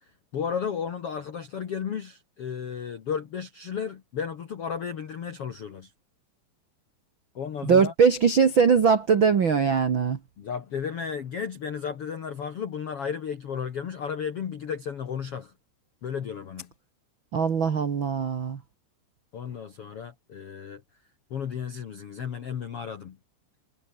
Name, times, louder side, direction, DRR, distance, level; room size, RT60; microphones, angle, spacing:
voice 1, 0.3-5.9 7.3-7.9 10.4-15.5 16.0-16.7 19.3-20.8 21.3-23.2, left 7 dB, 70° left, 1.3 m, -33 dB
voice 2, 7.6-10.2 17.3-18.6, right 6 dB, 90° right, 1.0 m, -21 dB
omnidirectional pair, 5.1 m